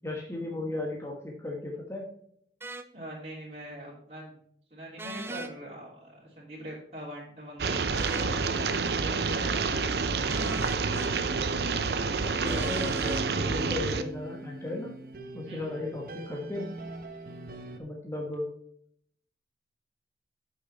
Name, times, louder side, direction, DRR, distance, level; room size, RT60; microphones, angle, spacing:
voice 1, 0.0-2.1 12.2-14.9 15.3-16.7 17.8-18.5, left 2 dB, 15° left, -1 dB, 1.2 m, -36 dB
sound 1, 2.6-2.9 5.0-5.5 7.9-8.3 10.3-11.1 12.4-13.3, right 2 dB, 15° right, 0.4 m, -39 dB
voice 2, 2.9-8.7 8.9-9.7 15.4-15.9, equal, 35° right, -5 dB, 3.0 m, -43 dB
sound 2, 7.6-14.0, right 4 dB, 70° right, 0.6 m, -28 dB
sound 3, 8.6-17.8, right 2 dB, 50° right, 1.0 m, -42 dB
8.2 x 5.8 x 4.2 m, 0.66 s
head